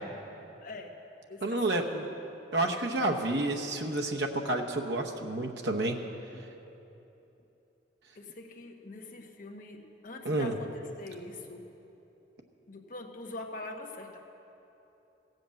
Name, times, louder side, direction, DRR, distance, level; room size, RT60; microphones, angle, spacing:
voice 1, 0.6-1.0 1.3-2.2 6.3-6.4 8.1-11.7 12.7-14.2, left 2 dB, 50° left, 3 dB, 1.1 m, -44 dB
voice 2, 1.4-2.1 2.5-6.0 10.2-10.5, right 2 dB, 75° right, 2 dB, 0.9 m, -30 dB
16.0 x 7.9 x 7.6 m, 3.0 s
head